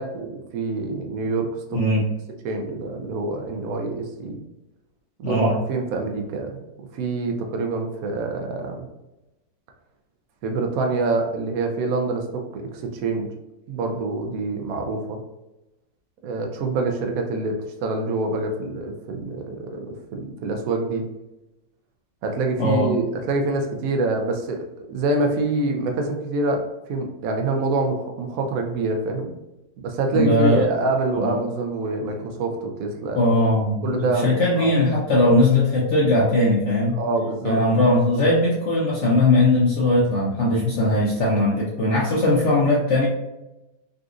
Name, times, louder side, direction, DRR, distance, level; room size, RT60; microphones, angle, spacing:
voice 1, 0.0-1.8 2.4-4.4 5.2-6.5 6.9-8.9 10.4-13.3 13.7-15.2 16.2-21.1 22.2-26.6 26.9-29.4 29.8-33.2 33.8-34.7 36.9-37.6, right 3 dB, 70° right, 3 dB, 0.8 m, -26 dB
voice 2, 1.7-2.0 5.2-5.6 22.6-22.9 30.1-30.7 31.1-31.4 33.2-37.0 37.4-43.1, left 1 dB, 80° left, -5 dB, 0.6 m, -19 dB
3.9 x 2.5 x 2.4 m, 0.97 s
omnidirectional pair, 2.0 m